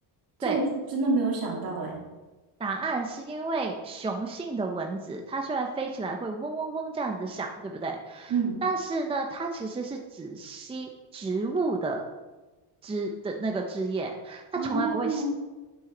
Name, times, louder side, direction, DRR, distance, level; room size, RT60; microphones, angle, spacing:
voice 1, 0.9-2.0 8.3-8.6 14.6-15.2, right 4 dB, 50° right, -3 dB, 2.8 m, -27 dB
voice 2, 2.6-8.3 8.6-12.0 12.8-15.2, right 3 dB, 15° right, 2 dB, 0.5 m, -31 dB
9.0 x 6.3 x 3.8 m, 1.2 s
cardioid pair, 145°, 44 cm